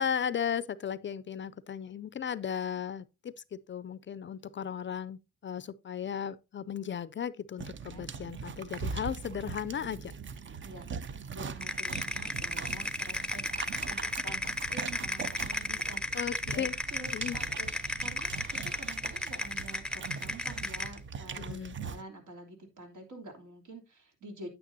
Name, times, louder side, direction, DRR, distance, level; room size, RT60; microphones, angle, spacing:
voice 1, 0.0-10.1 16.1-16.7 17.1-17.4 21.4-21.8, left 8 dB, 35° left, 0.4 m, -36 dB
sound 1, 7.6-22.0, right 6 dB, 35° right, 0.6 m, -41 dB
voice 2, 10.6-16.1 16.5-16.6 16.9-24.5, right 1 dB, 70° right, 3.0 m, -48 dB
sound 2, 11.6-21.0, left 1 dB, 5° left, 0.7 m, -34 dB
9.3 x 9.2 x 2.7 m
cardioid pair, 120°, 32 cm